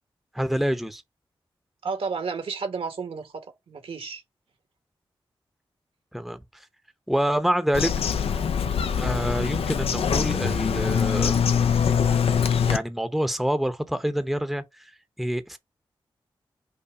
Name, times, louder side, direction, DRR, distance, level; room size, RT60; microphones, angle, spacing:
voice 1, 0.3-1.0 6.1-6.4 7.1-7.9 9.0-11.3 12.7-14.6 15.2-15.6, equal, ahead, 0.7 m, -26 dB
voice 2, 1.8-4.2, right 5 dB, 75° right, 1.2 m, -32 dB
Bird vocalization bird call bird song, 7.7-12.8, left 7 dB, 85° left, 0.5 m, -23 dB
5.5 x 2.1 x 4.7 m
cardioid pair, 45°, 10 cm